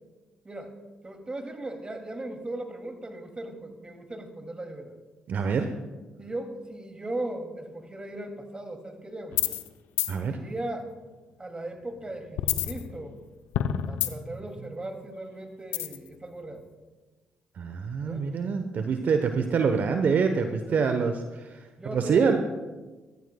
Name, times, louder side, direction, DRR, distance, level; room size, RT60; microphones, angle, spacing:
voice 1, 1.0-4.9 6.2-9.4 10.2-10.9 11.4-13.2 13.9-16.6 18.0-18.3 20.7-20.8 21.8-22.3, right 1 dB, 25° right, 5 dB, 2.5 m, -37 dB
voice 2, 5.3-5.7 10.1-10.4 17.5-21.6 21.9-22.4, right 5 dB, 55° right, 7 dB, 0.9 m, -25 dB
sound 1, 9.3-9.7 10.0-10.1 12.4-13.2 13.5-14.4 15.7-16.1, left 11 dB, 75° left, 0.7 m, -28 dB
23.0 x 14.0 x 2.3 m, 1.2 s
hypercardioid pair, 50°, 4 cm